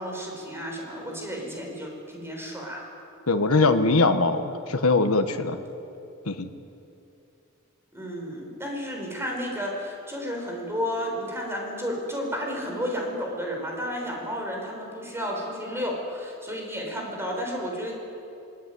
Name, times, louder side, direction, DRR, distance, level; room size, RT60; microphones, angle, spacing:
voice 1, 0.0-2.8 7.9-17.9, equal, 10° right, 0 dB, 6.3 m, -32 dB
voice 2, 3.3-5.6 6.3-6.5, left 3 dB, 75° left, 6 dB, 1.5 m, -22 dB
23.5 x 23.5 x 9.5 m, 2.7 s
head